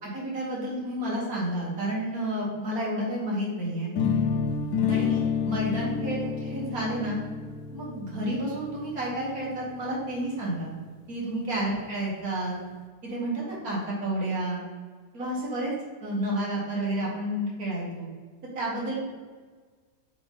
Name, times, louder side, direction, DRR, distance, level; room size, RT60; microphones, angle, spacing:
voice 1, 0.0-3.9 4.9-7.2 7.7-10.7 11.1-12.6 13.0-14.6 15.1-15.7 16.0-18.1 18.5-19.0, right 1 dB, 60° right, -5 dB, 2.5 m, -30 dB
sound 1, 4.0-9.9, left 6 dB, 75° left, 1.1 m, -29 dB
7.5 x 3.9 x 4.1 m, 1.5 s
omnidirectional pair, 1.8 m